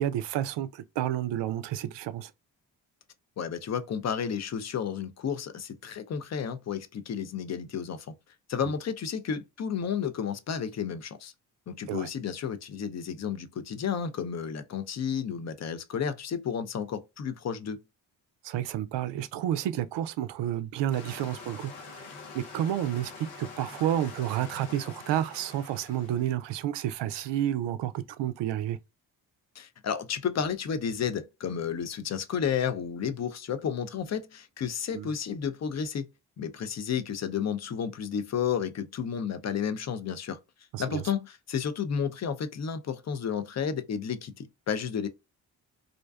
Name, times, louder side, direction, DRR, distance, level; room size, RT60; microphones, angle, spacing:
voice 1, 0.0-2.3 8.6-8.7 11.9-12.1 18.4-22.1 22.3-28.8 34.9-35.1 40.7-41.0, right 11 dB, 65° right, 0.5 m, -30 dB
voice 2, 3.4-8.1 8.5-11.3 11.7-17.8 29.6-36.1 36.4-40.4 40.8-45.1, left 7 dB, 35° left, 0.5 m, -32 dB
sound 1, 20.9-26.3, left 4 dB, 85° left, 0.8 m, -45 dB
2.5 x 2.2 x 2.3 m
hypercardioid pair, 45°, 48 cm